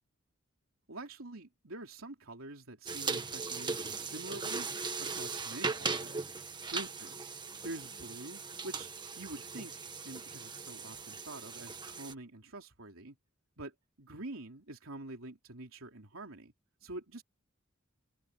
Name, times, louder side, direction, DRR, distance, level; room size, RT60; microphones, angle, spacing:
voice 1, 0.9-6.3 6.7-7.3 7.6-8.9 9.2-13.2 13.6-16.5 16.8-17.2, right 2 dB, 85° right, 3.3 m, -46 dB
sound 1, 2.9-12.1, right 4 dB, 20° right, 1.5 m, -39 dB
open air
head